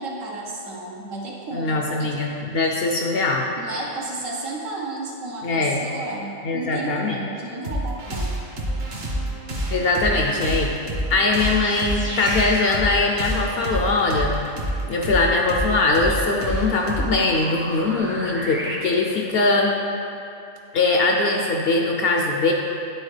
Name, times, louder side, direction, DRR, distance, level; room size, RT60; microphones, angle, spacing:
voice 1, 0.0-2.1 3.6-8.3, right 2 dB, 75° right, -2 dB, 1.3 m, -33 dB
voice 2, 1.5-3.5 5.4-5.9 6.4-7.2 9.7-10.7 11.1-14.4 14.9-19.8 20.7-22.5, left 3 dB, 65° left, 0 dB, 0.6 m, -21 dB
sound 1, 7.6-18.7, right 1 dB, 55° right, 1.1 m, -29 dB
sound 2, 11.3-18.8, right 1 dB, 20° right, 0.4 m, -36 dB
9.3 x 4.2 x 3.3 m, 2.7 s
omnidirectional pair, 1.3 m